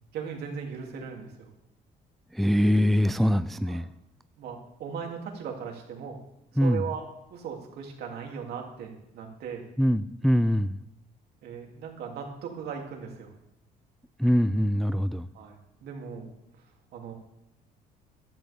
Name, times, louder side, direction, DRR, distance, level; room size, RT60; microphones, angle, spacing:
voice 1, 0.1-1.5 3.7-3.8 4.4-6.2 6.5-7.0 7.3-9.6 11.4-13.3 15.3-16.3 16.9-17.1, right 6 dB, 75° right, 1 dB, 3.0 m, -38 dB
voice 2, 2.3-3.9 6.6-6.8 9.8-10.8 14.2-15.3, equal, ahead, 13 dB, 0.4 m, -23 dB
15.5 x 12.0 x 3.7 m, 0.80 s
cardioid pair, 110°, 17 cm